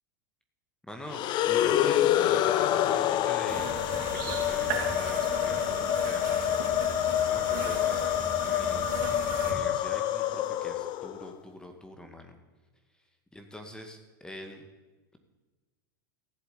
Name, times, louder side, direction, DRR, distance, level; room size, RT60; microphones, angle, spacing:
voice 1, 0.9-6.6 7.2-8.9 9.4-12.4 13.0-13.1 13.3-14.6, left 1 dB, 5° left, 5 dB, 2.0 m, -45 dB
sound 1, 1.1-11.3, left 11 dB, 45° left, 0.8 m, -27 dB
sound 2, 3.5-9.5, right 5 dB, 55° right, 3.8 m, -37 dB
15.0 x 7.9 x 8.4 m, 1.2 s
hypercardioid pair, 95°, 11 cm